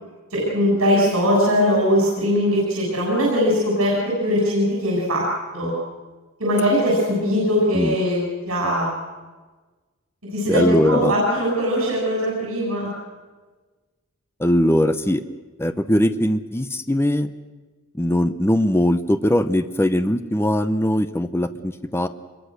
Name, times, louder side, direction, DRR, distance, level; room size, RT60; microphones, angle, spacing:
voice 1, 0.3-5.3 5.5-5.7 6.4-8.9 10.3-12.9, equal, 75° right, -4 dB, 7.1 m, -20 dB
voice 2, 10.5-11.1 14.4-15.2 15.6-17.3 18.0-22.1, left 1 dB, 10° left, 10 dB, 0.7 m, -20 dB
25.5 x 22.0 x 6.5 m, 1.3 s
head